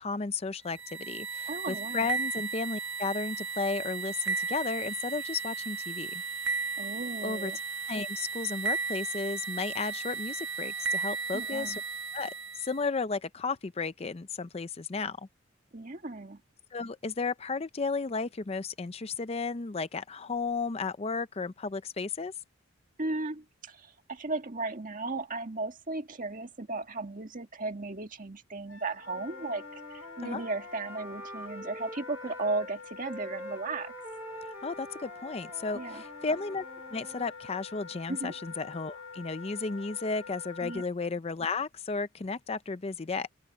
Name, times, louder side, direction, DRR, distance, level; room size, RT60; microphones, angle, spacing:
voice 1, 0.0-6.2 7.2-7.5 7.9-11.8 12.1-15.3 16.7-22.3 30.2-30.4 34.6-36.6 36.9-43.3, left 4 dB, 30° left, 0.5 m, -34 dB
sound 1, 0.7-12.8, right 4 dB, 60° right, 1.2 m, -35 dB
voice 2, 1.5-2.1 6.8-7.6 11.3-11.8 15.7-16.4 23.0-33.9 35.7-36.0 38.1-38.3 40.6-40.8, right 3 dB, 40° right, 1.8 m, -36 dB
Wind instrument woodwind instrument, 28.7-40.9, left 5 dB, 80° left, 1.5 m, -46 dB
Wind instrument woodwind instrument 2, 29.1-32.7 33.0-37.3, right 1 dB, 10° right, 1.2 m, -46 dB
open air
head